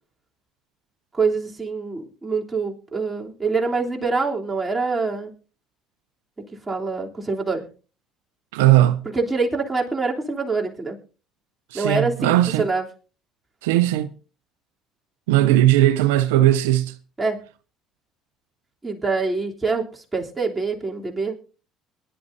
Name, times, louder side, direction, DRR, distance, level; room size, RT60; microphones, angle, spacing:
voice 1, 1.1-5.3 6.7-7.6 9.1-11.0 11.7-12.3 12.6-12.9 17.2-17.4 18.8-21.3, right 4 dB, 20° right, 3.2 m, -25 dB
voice 2, 8.5-9.0 11.7-12.7 13.6-14.1 15.3-16.9, right 14 dB, 85° right, 0.6 m, -18 dB
22.5 x 11.0 x 2.7 m
hypercardioid pair, 70°, 0 cm